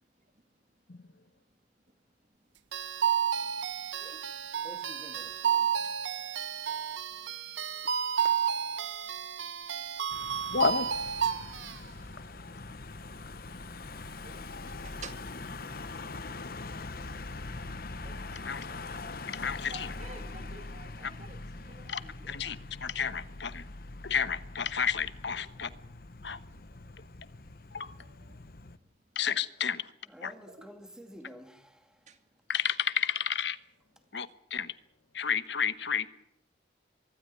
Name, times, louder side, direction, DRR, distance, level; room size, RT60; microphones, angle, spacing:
sound 1, 2.7-11.8, right 8 dB, 85° right, 1.1 m, -31 dB
voice 1, 4.6-5.7 30.1-31.8, equal, 5° right, 6 dB, 2.3 m, -50 dB
Car passing by / Engine, 10.1-28.8, left 3 dB, 55° left, 1.0 m, -43 dB
voice 2, 10.5-10.9 18.4-18.6 19.3-19.9 21.0-21.1 21.9-22.0 22.3-23.6 24.0-25.7 26.2-26.4 27.7-27.9 29.2-29.8 30.2-30.3 32.5-33.6 34.1-34.7 35.1-36.1, left 7 dB, 70° left, 13 dB, 1.1 m, -31 dB
voice 3, 14.8-15.2 18.0-18.5 19.7-22.5 26.2-26.6 27.8-28.4 30.4-30.7 32.1-32.2, right 3 dB, 40° right, 8 dB, 2.0 m, -51 dB
24.0 x 13.0 x 9.7 m, 0.81 s
head